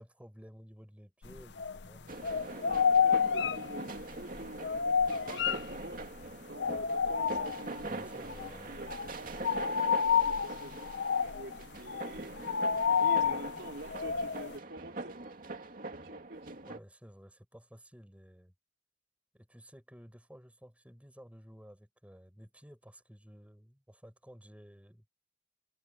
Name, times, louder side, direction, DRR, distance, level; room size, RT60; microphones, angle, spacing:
voice 1, 0.0-2.3 7.8-9.1 16.7-18.5 19.3-25.0, equal, 10° right, 6.2 m, -54 dB
sound 1, 1.2-2.0 2.2-6.2 6.6-7.9 8.3-8.5 8.7-14.5, left 6 dB, 70° left, 0.7 m, -30 dB
sound 2, 2.1-16.8, right 2 dB, 50° right, 2.6 m, -43 dB
voice 2, 2.3-6.0 6.5-7.9 8.2-12.3 12.9-16.6, right 1 dB, 75° right, 4.7 m, -48 dB
head